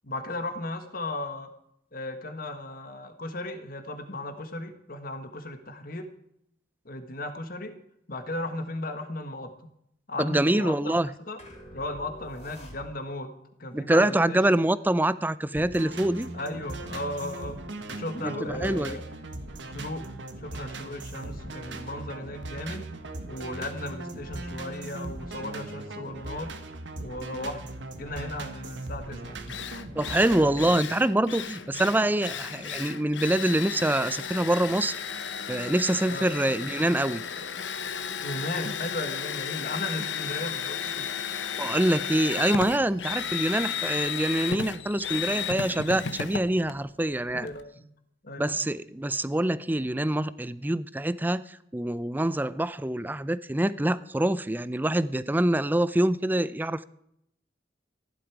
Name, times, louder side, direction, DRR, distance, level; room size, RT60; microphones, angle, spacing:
voice 1, 0.0-1.5 1.9-6.1 6.8-7.8 8.1-9.5 10.1-11.0 11.3-11.4 11.7-13.3 13.6-14.4 16.3-17.6 17.9-19.0 19.6-20.1 20.4-22.9 23.3-26.5 27.0-29.5 36.1-36.3 38.2-41.1 47.3-47.7 48.2-48.6, left 1 dB, 55° left, 1.6 m, -36 dB
voice 2, 10.2-11.1 13.7-16.3 18.2-19.0 30.0-37.2 41.6-47.5 48.4-56.8, right 1 dB, 10° right, 0.5 m, -25 dB
sound 1, 11.4-13.3, equal, 35° left, 3.4 m, -46 dB
sound 2, 15.5-30.8, right 2 dB, 90° right, 1.5 m, -39 dB
Drill, 29.0-29.1 29.5-47.6, left 7 dB, 90° left, 0.9 m, -34 dB
15.0 x 11.5 x 4.8 m
head